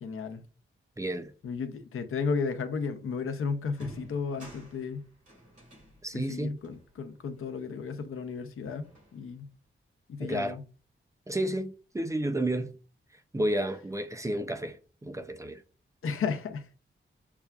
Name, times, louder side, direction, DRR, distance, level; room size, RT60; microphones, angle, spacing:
voice 1, 0.0-0.4 1.4-5.1 6.1-9.5 10.1-10.6 16.0-16.7, left 5 dB, 90° left, 0.6 m, -34 dB
voice 2, 1.0-1.3 6.0-6.6 10.2-10.6 11.3-12.7 13.3-15.6, right 1 dB, 15° right, 0.3 m, -31 dB
sound 1, 3.1-3.2 3.7-8.2 8.6-9.6, right 1 dB, 35° right, 2.1 m, -52 dB
6.6 x 2.3 x 2.3 m
wide cardioid pair, 140°, 21 cm